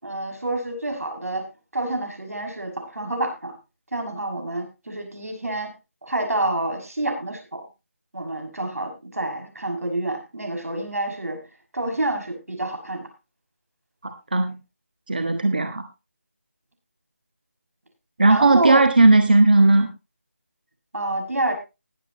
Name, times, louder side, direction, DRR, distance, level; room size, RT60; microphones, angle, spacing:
voice 1, 0.0-1.5 1.7-3.6 3.9-5.7 6.0-7.7 8.1-11.4 11.7-13.1 18.3-18.9 20.9-21.5, right 2 dB, 90° right, 5 dB, 6.3 m, -28 dB
voice 2, 14.0-14.6 15.1-15.8 18.2-19.9, right 2 dB, 40° right, 7 dB, 1.3 m, -17 dB
20.0 x 8.3 x 2.9 m, 0.27 s
figure-of-eight pair, 180°, 8 cm